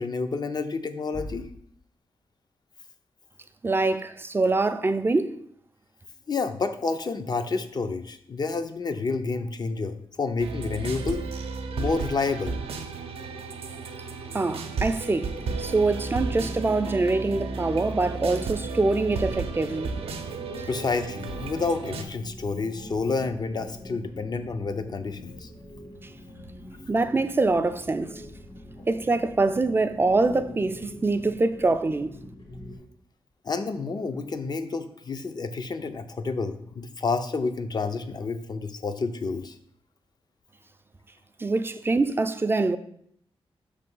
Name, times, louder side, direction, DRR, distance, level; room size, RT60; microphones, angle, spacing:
voice 1, 0.0-1.5 6.3-11.3 11.8-12.6 13.3-13.4 20.7-25.5 33.4-39.5, left 4 dB, 45° left, 0.6 m, -29 dB
voice 2, 3.6-5.4 14.3-19.9 20.6-20.7 26.9-28.2 28.9-32.1 41.4-42.8, right 3 dB, 25° right, 0.4 m, -24 dB
sound 1, 10.4-22.0, right 4 dB, 85° right, 0.6 m, -33 dB
sound 2, 15.2-32.8, left 1 dB, 65° left, 2.2 m, -44 dB
5.9 x 3.4 x 5.4 m
cardioid pair, 85°, 10 cm